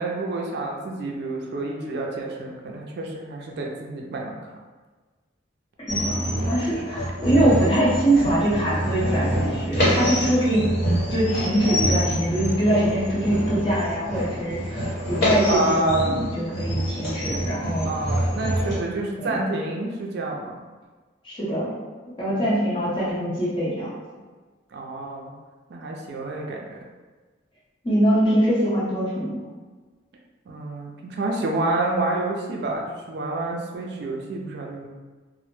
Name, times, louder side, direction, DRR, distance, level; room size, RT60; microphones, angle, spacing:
voice 1, 0.0-4.5 15.5-16.3 17.8-20.6 22.3-22.4 24.7-25.3 25.7-26.8 30.5-34.9, right 2 dB, 60° right, 0 dB, 0.3 m, -28 dB
sound 1, 5.9-18.8, equal, 60° left, 1.0 m, -26 dB
voice 2, 5.9-10.7 11.1-17.9 19.1-19.4 21.2-21.7 22.2-23.9 27.8-29.4, right 1 dB, 30° left, -9 dB, 0.8 m, -23 dB
2.0 x 2.0 x 3.0 m, 1.3 s
head